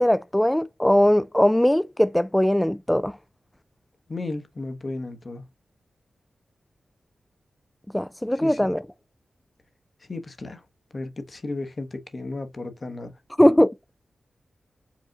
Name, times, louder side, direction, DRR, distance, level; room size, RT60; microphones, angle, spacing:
voice 1, 0.0-3.2 7.9-8.8 13.4-13.7, left 1 dB, 10° left, 0.4 m, -20 dB
voice 2, 4.1-5.4 8.3-8.7 10.1-10.6 10.9-13.1, left 2 dB, 45° left, 1.1 m, -34 dB
4.9 x 2.4 x 3.7 m
cardioid pair, 45°, 0 cm